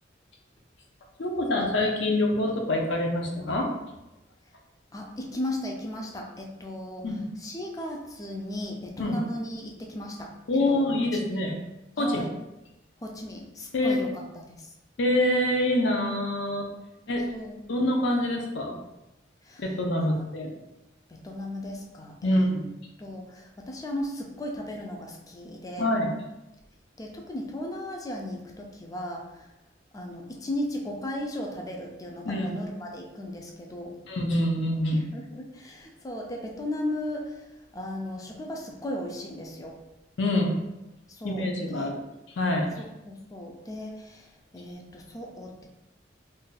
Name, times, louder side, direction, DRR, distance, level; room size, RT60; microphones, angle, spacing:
voice 1, 1.2-3.7 7.0-7.2 9.0-9.2 10.5-11.6 12.0-12.3 13.7-14.0 15.0-16.7 17.1-17.3 17.7-18.8 19.6-20.5 22.2-22.7 25.8-26.1 32.2-32.6 34.1-35.1 40.2-40.6 41.2-42.0 42.4-42.7, left 1 dB, 70° left, 1 dB, 0.5 m, -25 dB
voice 2, 4.9-7.1 7.4-10.3 10.7-10.9 12.0-12.3 13.0-14.7 17.3-17.6 19.5-19.6 20.0-20.2 21.2-22.5 23.0-25.9 27.0-29.2 29.9-33.9 34.9-37.4 37.7-39.7 41.2-41.5 41.7-41.9 42.8-44.3 44.5-45.7, left 1 dB, 20° left, 0 dB, 0.3 m, -36 dB
2.5 x 2.2 x 3.9 m, 0.97 s
head